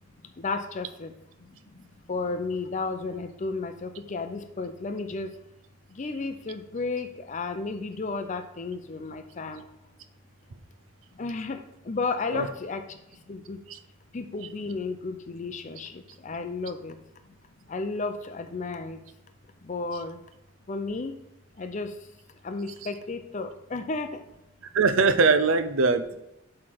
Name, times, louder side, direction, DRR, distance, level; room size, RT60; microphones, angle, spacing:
voice 1, 0.4-1.1 1.5-5.3 5.9-9.7 11.2-13.0 13.3-13.6 14.1-17.0 17.7-19.0 19.6-20.2 20.7-21.1 21.6-22.0 22.4-24.2, left 3 dB, 40° left, 8 dB, 0.5 m, -33 dB
voice 2, 24.7-26.2, right 4 dB, 85° right, 11 dB, 0.6 m, -22 dB
7.4 x 3.3 x 6.0 m, 0.91 s
head